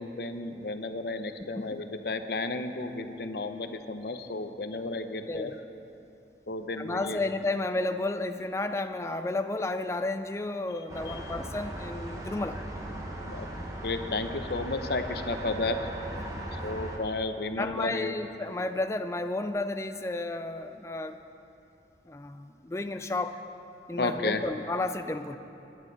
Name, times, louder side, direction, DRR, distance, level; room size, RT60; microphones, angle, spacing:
voice 1, 0.0-5.5 6.5-7.2 11.1-11.2 13.2-15.8 16.5-18.2 23.9-24.4, left 2 dB, 65° left, 8 dB, 0.7 m, -33 dB
voice 2, 5.3-5.6 6.8-12.6 16.2-16.5 17.6-21.2 22.1-23.4 23.9-25.4, left 2 dB, 15° left, 8 dB, 0.4 m, -32 dB
sound 1, 10.9-17.0, right 1 dB, 20° right, 1.3 m, -38 dB
21.0 x 10.5 x 4.0 m, 2.8 s
head